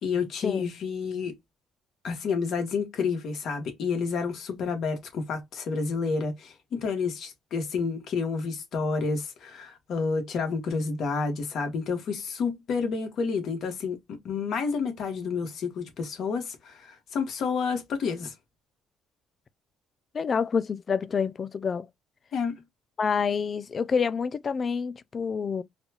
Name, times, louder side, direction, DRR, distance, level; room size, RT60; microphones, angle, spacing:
voice 1, 0.0-1.3 2.0-14.0 14.2-18.3 22.3-22.6, left 5 dB, 60° left, 1.3 m, -29 dB
voice 2, 20.1-21.9 23.0-25.6, left 6 dB, 35° left, 0.3 m, -27 dB
4.0 x 2.3 x 2.8 m
cardioid pair, 115°, 0 cm